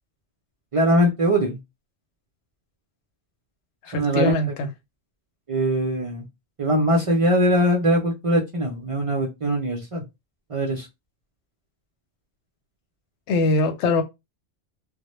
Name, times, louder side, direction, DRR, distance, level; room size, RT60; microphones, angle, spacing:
voice 1, 0.7-1.6 3.9-4.3 5.5-6.3 6.6-10.0 10.5-10.9, equal, 60° right, 0.3 m, -21 dB
voice 2, 3.8-4.7 13.3-14.0, left 2 dB, 75° left, 0.9 m, -22 dB
2.0 x 2.0 x 2.9 m
omnidirectional pair, 1.2 m